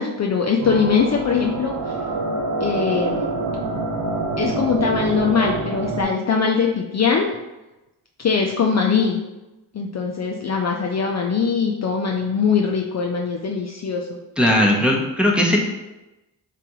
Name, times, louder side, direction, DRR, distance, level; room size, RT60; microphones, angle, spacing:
voice 1, 0.0-1.7 2.6-3.3 4.4-7.3 8.2-9.2 9.7-14.2, left 5 dB, 40° left, 0 dB, 0.5 m, -21 dB
sound 1, 0.6-6.0, right 3 dB, 45° right, 0.6 m, -26 dB
voice 2, 14.4-15.6, left 1 dB, ahead, -2 dB, 0.9 m, -18 dB
3.8 x 3.3 x 3.0 m, 1.0 s
cardioid pair, 55°, 43 cm